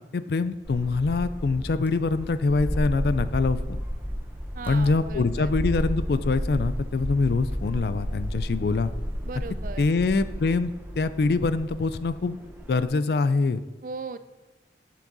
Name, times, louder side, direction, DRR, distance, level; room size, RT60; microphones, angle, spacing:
voice 1, 0.1-3.8 4.7-8.9 9.8-12.4 12.7-13.6, left 3 dB, 65° left, 13 dB, 0.4 m, -24 dB
sound 1, 0.6-12.9, equal, 10° right, 0.9 m, -32 dB
voice 2, 4.5-5.5 9.2-9.9 13.8-14.2, right 4 dB, 50° right, 12 dB, 0.4 m, -37 dB
10.5 x 7.5 x 4.0 m, 1.1 s
head